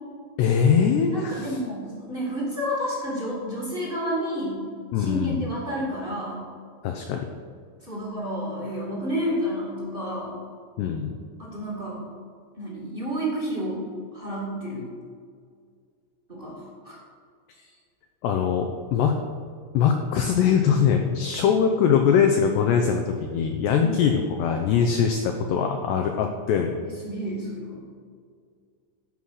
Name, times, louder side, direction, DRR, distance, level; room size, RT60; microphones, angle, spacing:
voice 1, 0.4-1.5 4.9-5.4 6.8-7.2 10.8-11.1 18.2-19.2 19.7-26.7, left 7 dB, 85° left, 4 dB, 2.4 m, -22 dB
voice 2, 1.1-4.6 4.9-6.4 7.8-10.4 11.4-12.0 12.6-13.8 14.1-14.9 16.3-17.0 23.8-24.0 26.8-27.8, equal, 20° right, -5 dB, 1.3 m, -30 dB
14.5 x 5.7 x 6.5 m, 2.1 s
omnidirectional pair, 5.8 m